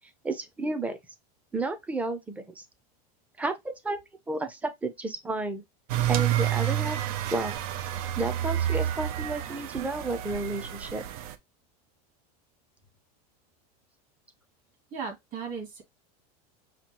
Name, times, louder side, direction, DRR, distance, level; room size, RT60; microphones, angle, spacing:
voice 1, 0.2-1.0 1.5-2.6 3.4-4.0 4.3-5.6 6.1-7.0 7.3-7.5 8.2-11.0, right 2 dB, 5° right, 0.6 m, -31 dB
sound 1, 5.9-11.4, right 12 dB, 65° right, 0.6 m, -29 dB
voice 2, 14.9-15.8, right 5 dB, 40° right, 2.3 m, -36 dB
5.8 x 2.3 x 2.9 m
supercardioid pair, 135°, 20 cm